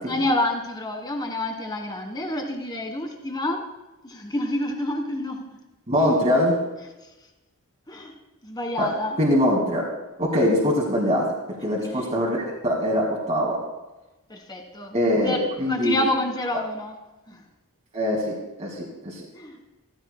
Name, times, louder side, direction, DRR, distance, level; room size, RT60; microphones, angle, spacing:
voice 1, 0.0-3.6 4.0-5.6 7.9-8.1 8.4-9.2 11.8-12.1 14.3-17.0 17.3-17.4 19.3-19.6, left 1 dB, 20° left, 4 dB, 1.5 m, -28 dB
voice 2, 5.9-6.6 8.8-8.9 9.2-9.8 10.2-11.3 11.6-13.6 14.9-16.0 16.5-16.6 17.9-19.2, equal, 30° right, -3 dB, 2.0 m, -23 dB
15.0 x 15.0 x 2.2 m, 1.1 s
head